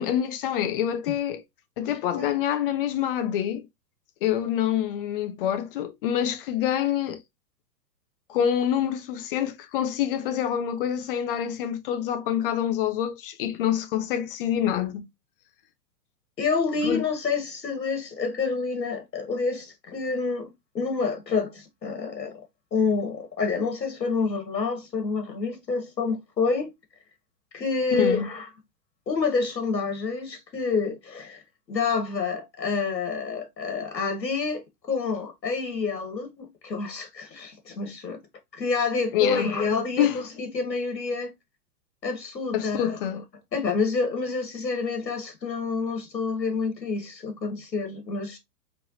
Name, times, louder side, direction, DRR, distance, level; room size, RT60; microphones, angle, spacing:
voice 1, 0.0-1.4 1.8-3.7 4.2-7.2 8.3-15.1 16.8-17.0 27.9-28.3 39.1-39.5 40.0-40.2 42.5-43.3, left 10 dB, 35° left, 0.6 m, -26 dB
voice 2, 16.4-20.5 20.7-22.4 22.7-26.7 27.5-28.4 29.1-31.4 31.7-38.2 38.5-41.3 42.0-43.0 43.5-48.4, left 4 dB, 85° left, 1.5 m, -28 dB
4.3 x 3.3 x 2.7 m
hypercardioid pair, 115°, 49 cm